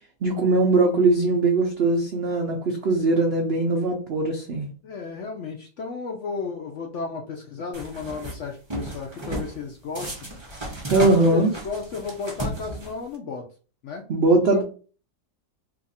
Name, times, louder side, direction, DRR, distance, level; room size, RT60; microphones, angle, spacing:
voice 1, 0.2-4.7 10.9-11.5 14.1-14.6, right 2 dB, 70° right, 1 dB, 0.5 m, -20 dB
voice 2, 4.8-10.1 10.9-13.4 13.8-14.0 14.5-14.6, left 4 dB, 65° left, 1 dB, 0.7 m, -33 dB
sound 1, 7.7-8.4 8.7-9.5 10.0-13.2, right 1 dB, 25° right, 0.6 m, -34 dB
2.9 x 2.4 x 4.0 m, 0.37 s
omnidirectional pair, 1.8 m